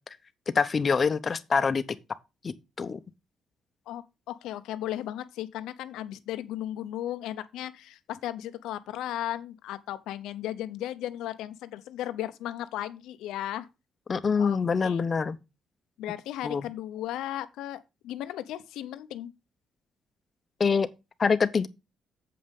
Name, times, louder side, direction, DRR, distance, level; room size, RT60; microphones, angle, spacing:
voice 1, 0.5-1.8 2.4-3.0 14.1-15.4 16.4-16.7 20.6-20.9 21.2-21.7, left 5 dB, 40° left, 0.8 m, -25 dB
voice 2, 3.9-13.7 14.4-14.6 14.8-15.0 16.0-19.3, left 12 dB, 90° left, 0.8 m, -35 dB
7.7 x 5.5 x 5.4 m
cardioid pair, 90°, 0 cm